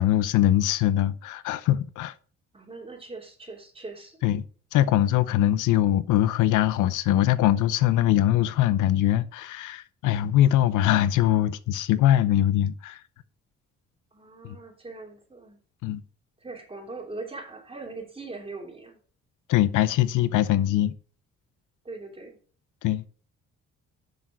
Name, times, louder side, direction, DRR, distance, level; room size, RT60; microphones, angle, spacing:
voice 1, 0.0-2.1 4.2-4.4 4.7-13.0 14.4-14.6 15.8-16.0 19.5-20.9 22.8-23.0, left 12 dB, 85° left, 0.7 m, -22 dB
voice 2, 2.5-4.2 14.1-15.6 16.4-19.0 21.8-22.4, right 3 dB, 20° right, 3.2 m, -41 dB
6.8 x 6.4 x 5.8 m
cardioid pair, 90°, 30 cm